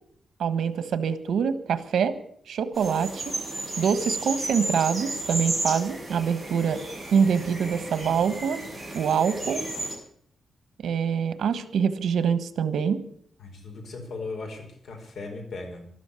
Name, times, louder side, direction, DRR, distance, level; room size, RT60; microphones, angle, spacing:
voice 1, 0.4-2.2 2.5-3.4 3.8-6.8 7.1-8.6 8.9-9.6 10.8-13.0, right 7 dB, 85° right, 13 dB, 1.4 m, -25 dB
sound 1, 2.7-9.9, right 2 dB, 5° left, 7.1 m, -33 dB
voice 2, 13.4-15.9, left 3 dB, 75° left, 3 dB, 4.7 m, -37 dB
13.5 x 12.5 x 8.4 m, 0.65 s
wide cardioid pair, 160°, 0 cm